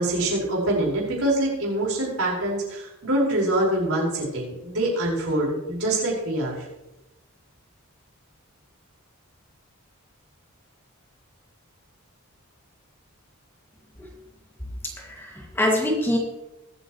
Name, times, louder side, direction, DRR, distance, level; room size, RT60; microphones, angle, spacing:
voice 1, 0.0-6.7, right 1 dB, 75° right, -3 dB, 5.1 m, -25 dB
voice 2, 15.0-16.2, left 1 dB, 10° left, -2 dB, 2.1 m, -24 dB
21.5 x 8.4 x 3.1 m, 0.97 s
head